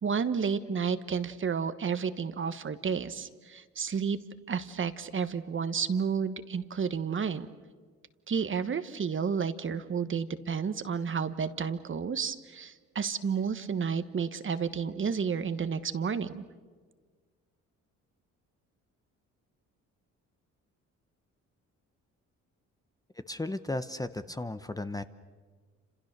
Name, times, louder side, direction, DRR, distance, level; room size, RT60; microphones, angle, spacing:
voice 1, 0.0-4.2 4.5-7.5 8.3-16.4, right 6 dB, 40° right, 11 dB, 1.3 m, -31 dB
voice 2, 23.3-25.0, left 2 dB, 10° left, 11 dB, 0.9 m, -35 dB
29.5 x 27.0 x 6.7 m, 1.5 s
cardioid pair, 90°, 30 cm